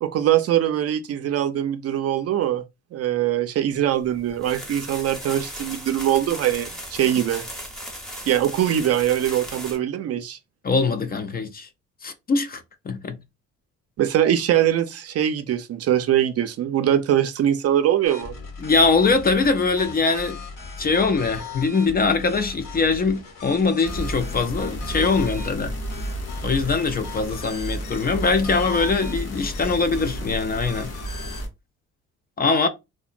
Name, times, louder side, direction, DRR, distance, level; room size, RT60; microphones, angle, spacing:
voice 1, 0.0-2.6 2.9-7.4 8.3-10.4 14.0-18.3, right 11 dB, 55° right, 0.4 m, -22 dB
sound 1, 4.0-9.8, equal, ahead, 0.9 m, -37 dB
voice 2, 10.6-11.7 12.0-13.2 18.6-20.4 20.8-25.8 26.4-30.9 32.4-32.7, left 4 dB, 30° left, 0.4 m, -22 dB
sound 2, 18.1-31.4, left 4 dB, 85° left, 1.1 m, -38 dB
sound 3, 23.8-31.5, right 1 dB, 55° left, 0.8 m, -32 dB
2.8 x 2.1 x 2.4 m
cardioid pair, 90°, 30 cm